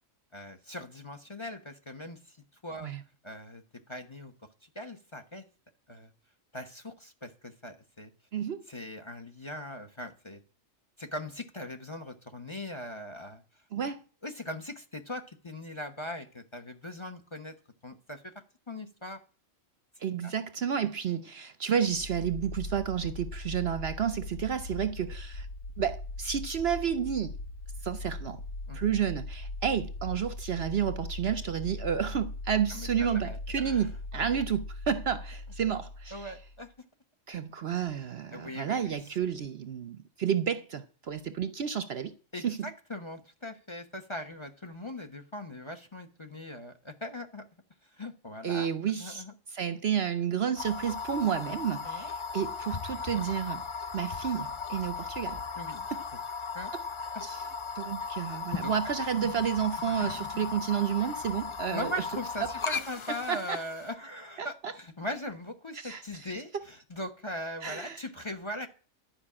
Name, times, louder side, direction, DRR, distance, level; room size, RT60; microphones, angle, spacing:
voice 1, 0.3-2.4 2.6-2.9 3.2-3.6 3.9-4.3 4.6-5.4 5.9-6.1 6.5-8.1 8.7-10.4 11.0-13.4 14.2-17.5 17.8-18.3 18.7-19.2 20.2-20.3 28.7-28.8 32.7-33.9 34.1-34.3 36.1-36.7 38.3-39.0 42.3-47.4 47.9-48.7 49.0-49.3 51.8-52.1 55.5-55.9 56.5-56.7 58.5-58.7 61.7-68.7, left 1 dB, 25° left, 1.1 m, -40 dB
voice 2, 8.3-8.6 13.7-14.0 20.0-25.5 25.8-27.3 27.8-28.4 28.7-36.3 37.3-42.1 42.4-42.7 48.4-49.2 49.5-53.6 53.9-55.4 55.9-56.0 57.2-57.4 57.8-61.9 63.3-63.6 64.4-64.7 65.7-66.3 67.6-68.0, right 8 dB, 55° right, 0.8 m, -31 dB
sound 1, 21.9-36.7, left 2 dB, 75° left, 1.7 m, -40 dB
sound 2, 50.6-63.9, left 5 dB, 50° left, 0.3 m, -37 dB
12.0 x 5.4 x 8.6 m
omnidirectional pair, 1.4 m